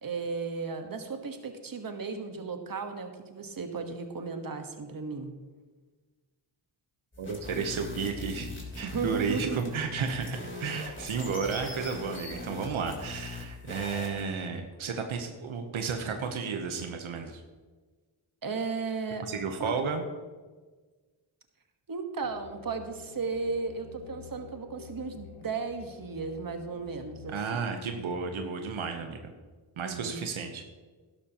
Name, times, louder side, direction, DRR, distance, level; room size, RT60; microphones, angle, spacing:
voice 1, 0.0-5.3 8.8-9.6 18.4-19.3 19.6-19.8 21.9-27.6 29.8-30.2, right 4 dB, 45° right, 6 dB, 1.4 m, -35 dB
sound 1, 7.1-14.2, left 3 dB, 25° left, 3.6 m, -41 dB
voice 2, 7.2-8.5 8.8-17.4 19.2-20.0 27.3-29.3 29.8-30.6, right 5 dB, 85° right, 5 dB, 1.1 m, -33 dB
sound 2, 22.2-27.4, left 7 dB, 85° left, 0.9 m, -49 dB
12.5 x 11.5 x 3.0 m, 1.4 s
cardioid pair, 60°, 47 cm